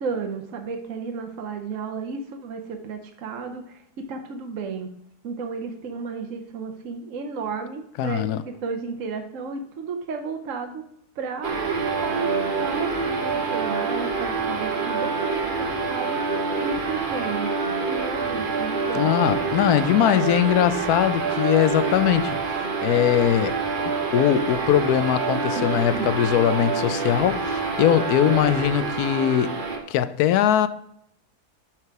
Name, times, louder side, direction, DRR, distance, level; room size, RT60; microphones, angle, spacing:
voice 1, 0.0-4.9 5.2-10.8 11.2-11.8 12.0-19.1 25.5-26.1, right 5 dB, 60° right, 1.2 m, -33 dB
voice 2, 8.0-8.4 18.9-23.6 23.8-29.6 29.9-30.7, left 11 dB, 80° left, 1.1 m, -21 dB
sound 1, 11.4-29.8, right 4 dB, 35° right, 1.2 m, -26 dB
6.0 x 5.9 x 4.6 m
omnidirectional pair, 1.7 m